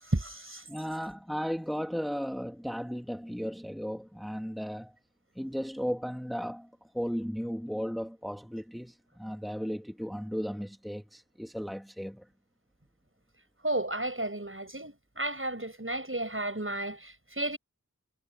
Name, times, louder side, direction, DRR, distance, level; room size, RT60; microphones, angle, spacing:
voice 1, 0.0-0.6 13.6-17.6, right 1 dB, 40° right, 7.9 m, -33 dB
voice 2, 0.7-4.9 5.4-12.3, equal, ahead, 2.3 m, -35 dB
wide cardioid pair, 40°, 32 cm